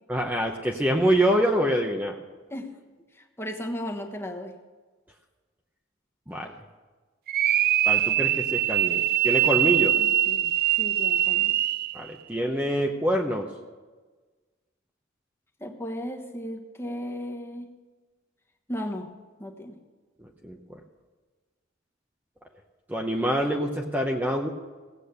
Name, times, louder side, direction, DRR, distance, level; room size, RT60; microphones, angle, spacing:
voice 1, 0.1-2.1 6.3-6.5 7.9-10.0 11.9-13.5 20.4-20.8 22.9-24.5, right 1 dB, 10° right, 1 dB, 0.8 m, -25 dB
voice 2, 3.1-4.6 10.0-11.6 15.6-17.7 18.7-19.1 19.4-19.7, equal, 10° left, 3 dB, 1.3 m, -35 dB
sound 1, 7.3-12.0, right 12 dB, 50° right, 0.3 m, -23 dB
17.0 x 8.2 x 6.8 m, 1.4 s
head